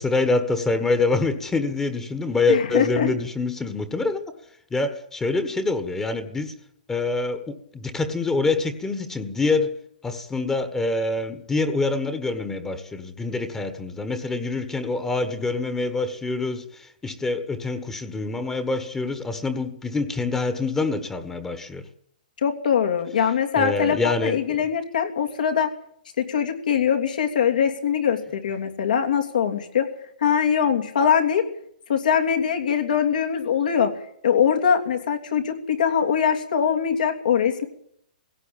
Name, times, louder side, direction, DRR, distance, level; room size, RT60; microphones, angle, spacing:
voice 1, 0.0-4.2 4.7-6.5 6.9-9.8 10.0-21.8 23.6-24.6, left 3 dB, 10° left, 1.4 m, -25 dB
voice 2, 2.5-3.1 22.4-25.7 26.2-29.9 30.2-31.4 31.9-33.9 34.2-37.6, left 7 dB, 75° left, 3.0 m, -22 dB
18.0 x 17.0 x 8.9 m
hypercardioid pair, 140°, 4 cm